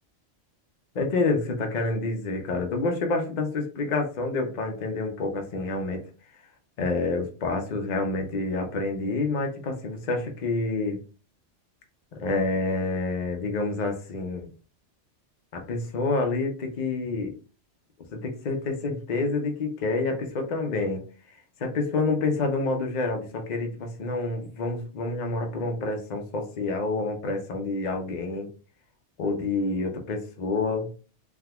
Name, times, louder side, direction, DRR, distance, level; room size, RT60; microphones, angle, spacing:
voice 1, 0.9-6.0 6.8-11.0 12.1-14.5 15.5-17.3 18.1-21.0 21.6-28.5 29.2-30.9, left 3 dB, 45° left, 3 dB, 0.6 m, -28 dB
3.5 x 2.8 x 2.2 m, 0.36 s
omnidirectional pair, 1.3 m